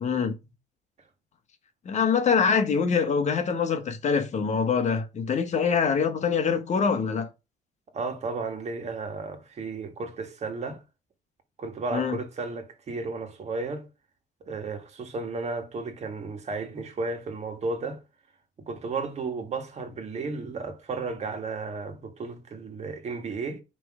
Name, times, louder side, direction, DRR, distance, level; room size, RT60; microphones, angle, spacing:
voice 1, 0.0-0.3 1.8-7.3 11.9-12.2, left 6 dB, 45° left, 1.2 m, -24 dB
voice 2, 7.9-10.8 11.6-13.9 14.4-18.0 18.6-23.6, right 3 dB, 40° right, 1.6 m, -33 dB
5.9 x 3.2 x 4.9 m
cardioid pair, 110°, 17 cm